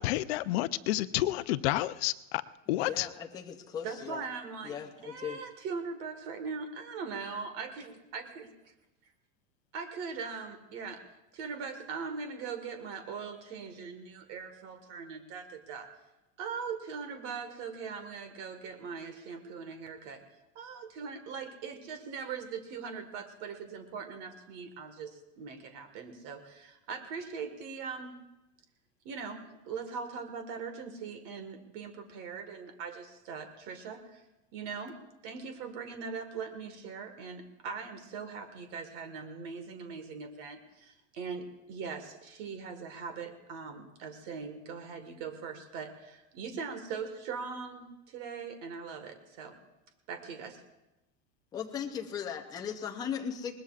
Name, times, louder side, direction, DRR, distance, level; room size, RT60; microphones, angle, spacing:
voice 1, 0.0-2.4 2.7-3.1, left 16 dB, 60° left, 13 dB, 0.6 m, -30 dB
voice 2, 2.8-4.2 4.6-5.4 51.5-53.5, left 8 dB, 10° left, 2 dB, 0.5 m, -38 dB
voice 3, 3.8-4.8 5.0-8.7 9.7-11.0 11.3-15.9 16.4-20.2 20.5-28.2 29.0-34.2 34.5-35.0 35.2-49.6 50.1-50.6, right 5 dB, 40° right, 8 dB, 1.6 m, -41 dB
20.5 x 19.5 x 2.4 m, 0.95 s
supercardioid pair, 175°, 35 cm